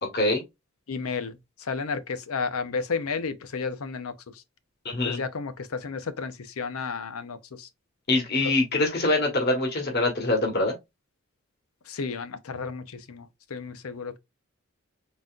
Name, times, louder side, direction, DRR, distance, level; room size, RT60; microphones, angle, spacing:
voice 1, 0.9-1.4 1.7-4.1 5.0-7.7 11.9-13.3 13.5-14.2, left 5 dB, 85° left, 0.6 m, -32 dB
voice 2, 4.8-5.2 8.1-10.7, left 2 dB, 50° left, 1.4 m, -24 dB
4.0 x 3.7 x 2.4 m
head